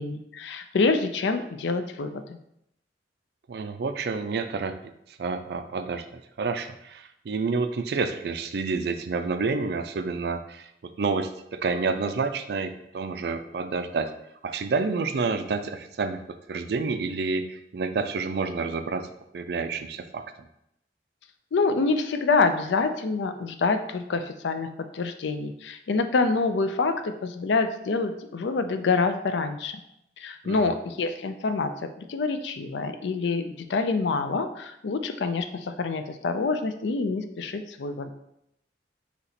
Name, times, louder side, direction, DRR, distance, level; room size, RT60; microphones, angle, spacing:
voice 1, 0.0-2.4 21.5-24.7 24.9-29.8 30.2-38.1, left 4 dB, 75° left, 8 dB, 0.4 m, -26 dB
voice 2, 3.5-4.8 5.1-10.7 11.0-14.1 14.4-16.2 16.5-19.1 19.3-20.3 30.4-30.6, right 4 dB, 60° right, 9 dB, 0.3 m, -29 dB
4.1 x 2.9 x 4.1 m, 0.78 s
head